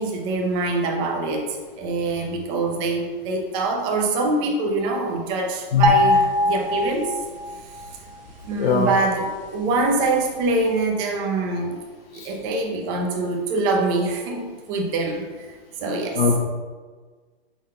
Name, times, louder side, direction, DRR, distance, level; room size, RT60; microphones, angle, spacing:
voice 1, 0.0-7.1 8.4-11.8 12.1-15.5 15.8-16.2, right 3 dB, 15° right, 2 dB, 0.6 m, -24 dB
sound 1, 5.8-8.1, left 1 dB, 50° right, 0.9 m, -22 dB
voice 2, 8.6-8.9 12.1-12.3 16.2-16.4, left 6 dB, 70° left, -2 dB, 1.1 m, -20 dB
7.1 x 3.9 x 5.4 m, 1.4 s
hypercardioid pair, 165°, 30 cm